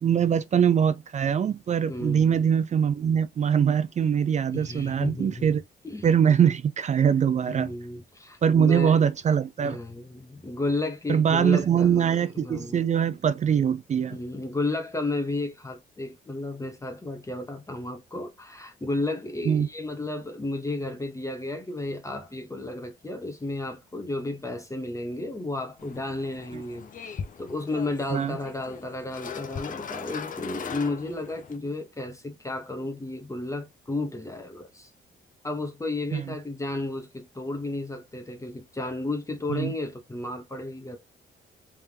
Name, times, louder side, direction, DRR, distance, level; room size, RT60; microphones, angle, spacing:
voice 1, 0.0-5.6 6.0-7.7 8.4-9.8 11.1-14.2 19.5-19.7 26.5-26.6 28.1-28.4 36.1-36.3 39.5-39.7, right 8 dB, 35° right, 0.4 m, -23 dB
voice 2, 1.9-2.4 4.5-5.5 5.8-6.1 7.5-9.0 9.6-12.8 14.1-34.9 35.4-41.0, left 2 dB, 15° left, 0.9 m, -33 dB
sound 1, 25.8-31.6, left 6 dB, 40° left, 0.6 m, -39 dB
3.4 x 3.3 x 2.8 m
cardioid pair, 90°, 20 cm